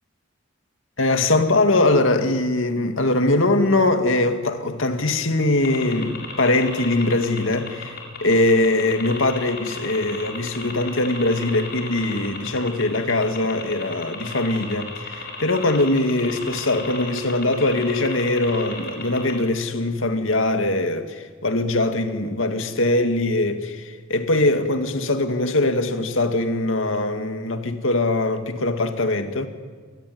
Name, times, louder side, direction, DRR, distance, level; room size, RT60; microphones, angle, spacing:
voice 1, 1.0-29.5, left 2 dB, 85° left, 2.1 m, -22 dB
sound 1, 5.6-19.4, left 4 dB, 55° left, 7.0 m, -35 dB
29.0 x 21.0 x 9.4 m
head